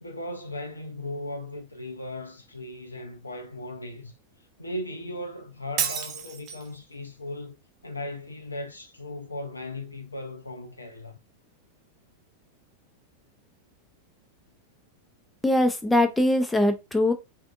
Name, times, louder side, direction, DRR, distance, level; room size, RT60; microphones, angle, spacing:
voice 1, 0.0-4.1 4.6-7.6 7.8-11.2, left 1 dB, 80° left, 0.6 m, -37 dB
Shatter, 5.8-6.8, right 8 dB, 40° right, 0.6 m, -30 dB
voice 2, 15.4-17.1, left 1 dB, 5° left, 0.5 m, -22 dB
3.3 x 2.5 x 2.4 m
figure-of-eight pair, 90°, 0 cm